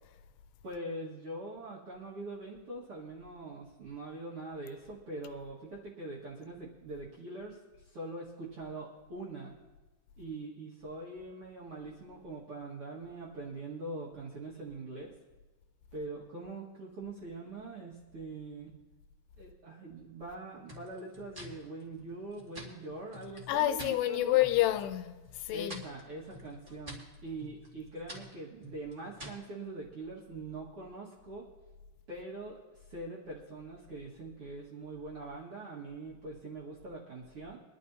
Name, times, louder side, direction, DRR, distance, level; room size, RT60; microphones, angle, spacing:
voice 1, 0.6-9.5 10.2-15.1 15.9-18.7 19.4-24.4 25.5-31.5 32.1-32.6 32.9-37.6, right 2 dB, 50° right, 1.8 m, -43 dB
sound 1, 20.7-24.0 24.4-24.9 25.2-29.5, left 1 dB, 30° right, 0.9 m, -49 dB
voice 2, 23.5-25.8, left 14 dB, 85° left, 2.6 m, -28 dB
23.5 x 11.5 x 2.7 m
omnidirectional pair, 4.8 m